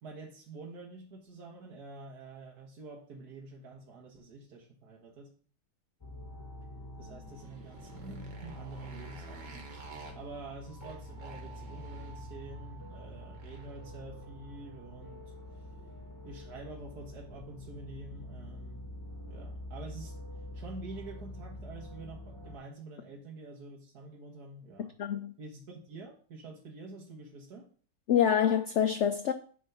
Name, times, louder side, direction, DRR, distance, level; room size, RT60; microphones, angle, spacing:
voice 1, 0.0-5.3 7.0-9.7 10.1-15.2 15.5-15.7 16.2-18.9 19.3-20.2 20.5-24.9 25.4-27.7, right 3 dB, 70° right, 1.8 m, -47 dB
sound 1, 6.0-22.6, left 1 dB, 15° left, 1.1 m, -46 dB
Motorcycle, 7.2-13.9, right 4 dB, 90° right, 2.0 m, -52 dB
voice 2, 24.8-25.3 28.1-29.3, left 8 dB, 70° left, 0.6 m, -26 dB
10.0 x 3.7 x 5.6 m
omnidirectional pair, 1.8 m